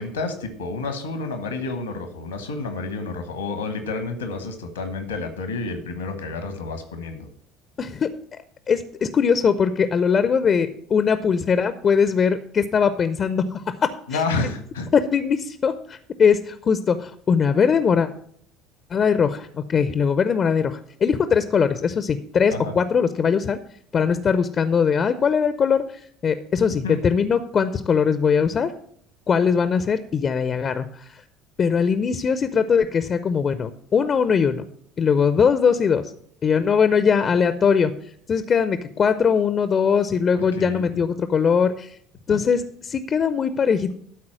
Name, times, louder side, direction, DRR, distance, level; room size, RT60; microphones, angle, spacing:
voice 1, 0.0-7.3 14.1-14.9 22.5-22.7 26.8-27.0 40.5-41.0 42.3-42.4, left 3 dB, 85° left, 7 dB, 1.2 m, -29 dB
voice 2, 7.8-8.1 8.7-13.7 14.1-14.5 14.9-18.1 18.9-23.6 23.9-25.8 26.2-28.7 29.3-31.1 31.6-34.6 35.0-36.1 36.4-37.9 38.3-41.9 42.3-43.9, left 6 dB, 35° left, 12 dB, 0.6 m, -21 dB
13.0 x 4.3 x 7.5 m, 0.63 s
figure-of-eight pair, 60°, 0 cm